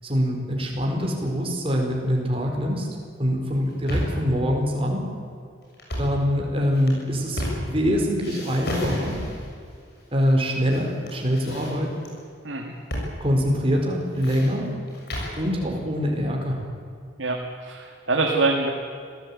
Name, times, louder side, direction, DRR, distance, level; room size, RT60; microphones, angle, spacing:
voice 1, 0.0-2.9 3.2-5.1 6.0-9.2 10.1-11.9 13.2-14.7 15.4-16.6, equal, 30° right, 1 dB, 4.6 m, -24 dB
sound 1, 3.5-4.3 5.7-6.2 6.7-7.9 8.2-9.5 10.2-10.8 11.1-12.1 12.9-13.1 13.4-13.5 13.9-15.4, equal, 55° left, 7.3 m, -31 dB
voice 2, 17.2-18.7, right 3 dB, 85° right, 0 dB, 2.4 m, -24 dB
26.0 x 17.0 x 8.7 m, 2.3 s
head